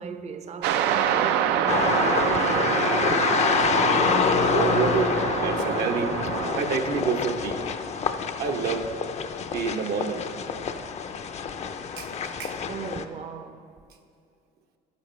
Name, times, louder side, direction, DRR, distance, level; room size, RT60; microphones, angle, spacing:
voice 1, 0.0-3.2 12.3-13.8, right 6 dB, 40° right, 0.6 m, -37 dB
sound 1, 0.6-6.6, right 9 dB, 90° right, 0.5 m, -26 dB
sound 2, 1.7-13.0, left 6 dB, 40° left, 0.5 m, -27 dB
voice 2, 4.5-5.1 5.4-6.1 6.6-7.6 8.4-8.8 9.5-10.2 12.0-12.1 12.4-12.6, right 5 dB, 70° right, 0.8 m, -27 dB
11.5 x 9.6 x 3.2 m
cardioid pair, 110°, 17 cm